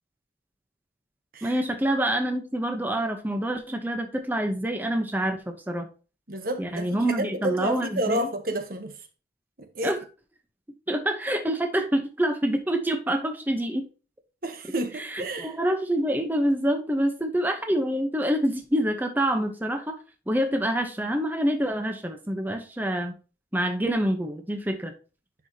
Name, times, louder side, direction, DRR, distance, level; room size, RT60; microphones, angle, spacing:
voice 1, 1.4-5.9 6.6-8.3 9.8-10.0 10.9-13.9 15.0-20.0 20.3-23.2 23.5-24.9, right 1 dB, 10° right, 0.8 m, -26 dB
voice 2, 6.3-8.9 9.6-10.0 14.4-15.6, right 1 dB, 50° right, 1.2 m, -30 dB
10.5 x 4.9 x 2.8 m
head